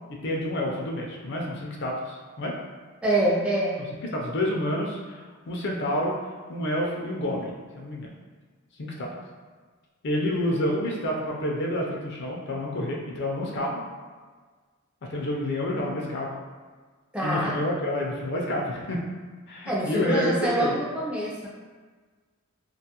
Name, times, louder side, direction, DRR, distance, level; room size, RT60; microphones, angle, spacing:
voice 1, 0.2-2.6 3.9-6.2 6.5-8.1 8.8-9.1 10.0-13.8 15.1-16.3 17.2-19.0 19.5-20.8, left 1 dB, 55° left, -2 dB, 0.4 m, -29 dB
voice 2, 3.0-3.8 17.1-17.6 19.7-21.5, right 1 dB, 5° right, -6 dB, 0.4 m, -25 dB
2.4 x 2.3 x 2.8 m, 1.5 s
head